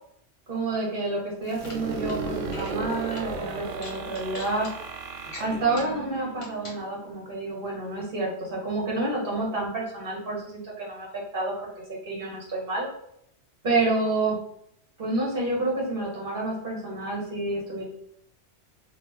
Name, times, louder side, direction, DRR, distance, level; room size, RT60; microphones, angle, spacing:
voice 1, 0.5-4.7 5.4-12.9 13.6-14.4 15.0-17.8, right 2 dB, 50° right, -3 dB, 1.1 m, -29 dB
sound 1, 1.4-2.2 2.4-2.8 3.1-3.3 3.8-4.7 5.2-6.0 6.4-6.8, left 2 dB, 35° left, 0.6 m, -42 dB
sound 2, 1.5-7.2, right 4 dB, 80° right, 0.9 m, -35 dB
3.0 x 2.3 x 3.3 m, 0.74 s
omnidirectional pair, 1.2 m